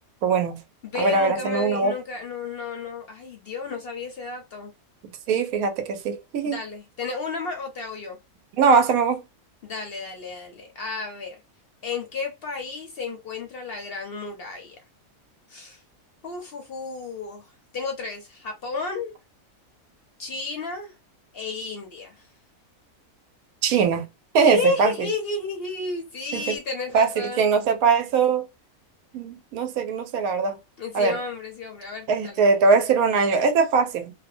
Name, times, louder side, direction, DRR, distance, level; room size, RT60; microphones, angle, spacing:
voice 1, 0.2-0.6 1.0-1.9 5.3-6.6 8.6-9.2 23.6-24.1 24.3-25.1 26.3-26.5 26.9-28.4 29.1-30.6 30.9-31.2 32.1-34.1, right 5 dB, 90° right, 1.1 m, -21 dB
voice 2, 0.8-4.7 6.4-8.2 9.6-11.4 11.8-14.8 15.5-15.8 16.2-17.5 17.7-19.1 20.2-21.0 21.3-22.3 24.4-27.5 30.8-32.4, left 4 dB, 55° left, 0.7 m, -32 dB
2.5 x 2.1 x 2.5 m
omnidirectional pair, 1.5 m